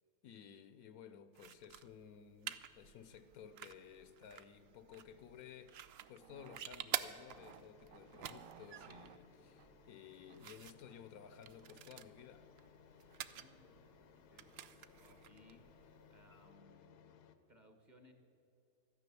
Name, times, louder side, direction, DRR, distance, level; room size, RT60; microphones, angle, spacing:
voice 1, 0.2-12.5, left 8 dB, 75° left, 1.0 m, -56 dB
sound 1, 1.3-16.5, right 10 dB, 90° right, 0.5 m, -49 dB
sound 2, 2.5-16.4, right 9 dB, 65° right, 0.9 m, -65 dB
sound 3, 7.0-17.4, left 7 dB, 90° left, 1.3 m, -64 dB
voice 2, 13.3-13.9 14.3-14.5 15.0-17.2 17.5-18.1, left 1 dB, 30° right, 1.2 m, -65 dB
13.5 x 9.9 x 6.9 m
omnidirectional pair, 1.7 m